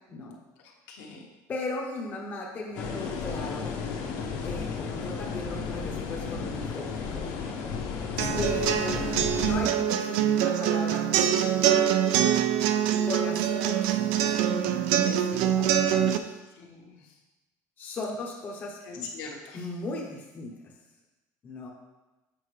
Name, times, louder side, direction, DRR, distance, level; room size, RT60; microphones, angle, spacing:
voice 1, 0.6-1.2 8.2-8.5 16.6-17.2 18.8-19.7, left 4 dB, 70° left, -1 dB, 1.3 m, -43 dB
voice 2, 1.5-3.8 4.4-7.3 8.3-9.0 9.3-11.9 13.0-16.3 17.8-19.1 19.5-20.5 21.4-21.7, left 2 dB, 25° left, -2 dB, 0.7 m, -37 dB
sound 1, 2.8-9.6, left 5 dB, 55° left, 0.9 m, -33 dB
sound 2, 8.2-16.2, right 10 dB, 80° right, 0.4 m, -24 dB
7.6 x 5.4 x 3.2 m, 1.1 s
cardioid pair, 175°, 8 cm